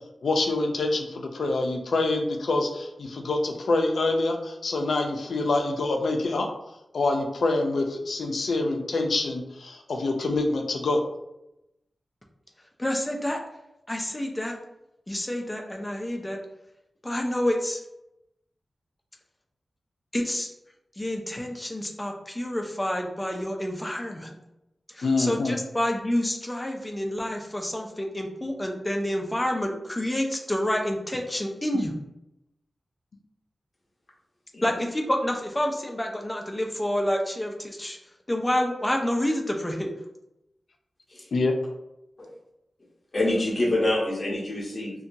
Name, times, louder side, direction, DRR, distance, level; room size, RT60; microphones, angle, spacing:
voice 1, 0.2-6.5 6.9-11.0 25.0-25.6 41.3-41.5, left 2 dB, 85° left, 3 dB, 0.4 m, -26 dB
voice 2, 12.8-13.4 13.9-14.6 15.1-16.4 17.0-17.8 20.1-20.5 21.0-24.3 24.9-31.9 34.6-38.0 38.3-39.9, left 1 dB, 15° left, 2 dB, 0.4 m, -28 dB
voice 3, 43.1-44.9, left 1 dB, 35° left, -4 dB, 0.8 m, -26 dB
2.7 x 2.2 x 2.5 m, 0.87 s
wide cardioid pair, 110°, 0 cm